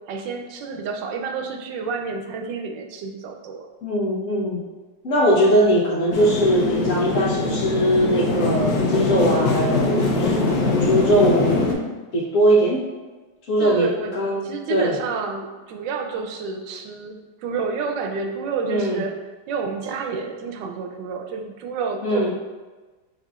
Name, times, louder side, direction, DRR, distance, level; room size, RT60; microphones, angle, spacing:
voice 1, 0.1-3.7 13.6-19.1 19.5-22.3, right 5 dB, 90° right, 4 dB, 1.3 m, -29 dB
voice 2, 3.8-4.6 5.0-10.4 10.8-11.7 12.1-12.9 13.5-15.0 18.7-19.0 22.0-22.3, right 1 dB, 55° left, -4 dB, 1.0 m, -20 dB
sound 1, 6.1-11.7, left 3 dB, 80° left, 1.3 m, -22 dB
5.5 x 3.9 x 2.4 m, 1.3 s
omnidirectional pair, 1.9 m